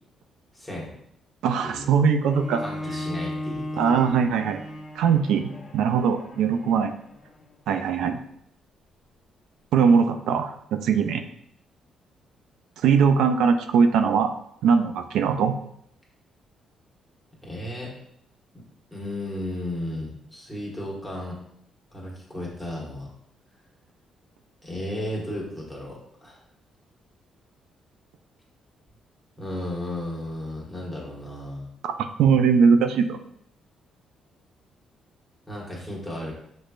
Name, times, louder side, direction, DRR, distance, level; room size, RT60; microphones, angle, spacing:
voice 1, 0.5-0.9 1.6-1.9 2.6-4.1 17.4-17.9 18.9-21.4 21.9-23.1 24.6-26.4 29.4-31.7 35.5-36.3, left 1 dB, 10° left, -4 dB, 1.6 m, -34 dB
voice 2, 1.4-2.6 3.8-4.6 5.0-6.9 7.7-8.2 9.7-11.2 12.8-14.3 14.6-15.5 31.8-31.9 32.2-33.2, right 6 dB, 85° right, 8 dB, 0.4 m, -21 dB
Bowed string instrument, 2.2-7.5, left 1 dB, 40° left, 0.9 m, -36 dB
6.1 x 3.2 x 2.5 m, 0.71 s
cardioid pair, 90°, 0 cm